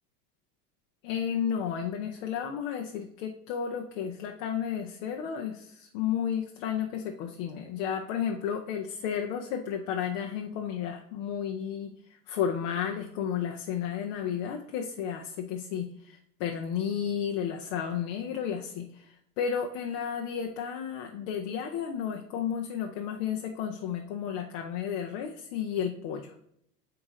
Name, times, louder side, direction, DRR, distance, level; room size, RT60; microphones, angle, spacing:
voice 1, 1.0-26.3, left 8 dB, 55° left, 3 dB, 0.8 m, -32 dB
8.8 x 2.9 x 3.7 m, 0.74 s
supercardioid pair, 135°, 45 cm